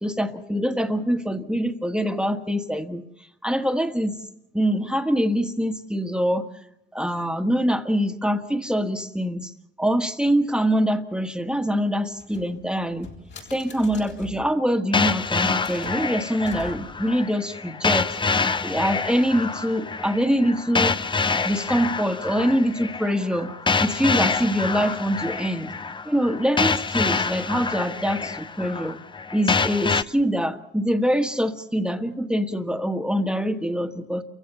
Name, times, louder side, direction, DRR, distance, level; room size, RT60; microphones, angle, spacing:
voice 1, 0.0-3.0 3.4-4.1 4.5-6.5 6.9-9.5 9.8-13.1 13.5-18.1 18.6-21.0 21.4-23.5 23.8-25.7 26.0-29.0 29.3-34.2, equal, 5° right, 6 dB, 1.5 m, -24 dB
sound 1, 12.1-14.5 15.2-17.1, left 5 dB, 65° left, 7.9 m, -44 dB
sound 2, 14.9-30.0, left 4 dB, 25° left, 0.8 m, -26 dB
29.0 x 16.0 x 6.8 m, 0.83 s
cardioid pair, 90°, 20 cm